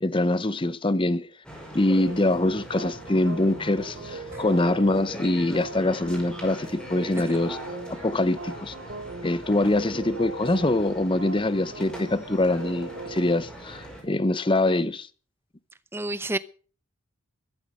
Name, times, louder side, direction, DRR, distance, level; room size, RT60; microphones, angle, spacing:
voice 1, 0.0-1.3 1.7-7.6 7.9-8.7 9.2-15.1, left 2 dB, 25° left, 0.7 m, -24 dB
sound 1, 1.4-14.0, right 1 dB, 5° left, 5.2 m, -42 dB
sound 2, 2.0-13.3, right 2 dB, 55° right, 3.2 m, -40 dB
voice 2, 15.9-16.4, right 2 dB, 10° right, 0.8 m, -30 dB
13.5 x 12.5 x 6.3 m
head